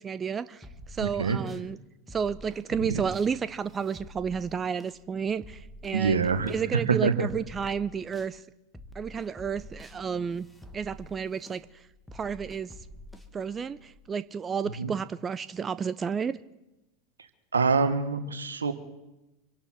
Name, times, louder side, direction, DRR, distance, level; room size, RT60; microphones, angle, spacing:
voice 1, 0.0-1.8 2.1-6.2 6.5-8.4 8.9-10.5 10.7-11.9 12.1-12.7 13.3-16.4, right 6 dB, 25° right, 15 dB, 0.5 m, -31 dB
sound 1, 0.6-1.7 2.1-8.3 8.7-14.0, left 1 dB, 5° left, 1.9 m, -48 dB
voice 2, 1.0-1.4 2.8-3.0 5.9-7.3 14.8-14.9 17.2-18.7, right 5 dB, 80° right, 10 dB, 1.4 m, -26 dB
26.0 x 11.0 x 4.5 m, 0.98 s
figure-of-eight pair, 85°, 0 cm